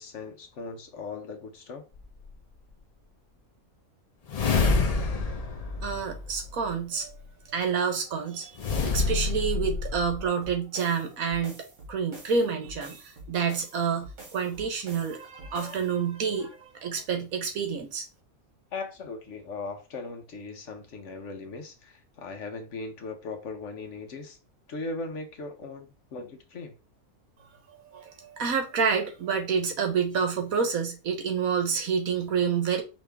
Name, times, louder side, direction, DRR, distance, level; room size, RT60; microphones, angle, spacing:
voice 1, 0.0-1.8 15.4-15.8 16.4-16.5 18.7-24.4 24.7-26.7, left 3 dB, 60° left, 1.1 m, -39 dB
sound 1, 2.0-2.1 4.3-6.7 8.6-10.2, left 4 dB, 80° left, 0.3 m, -27 dB
voice 2, 5.8-7.2 7.5-18.1 27.9-32.8, right 6 dB, 75° right, 1.5 m, -28 dB
sound 2, 10.4-15.9, right 2 dB, 60° right, 1.8 m, -46 dB
5.0 x 3.0 x 3.4 m
omnidirectional pair, 1.5 m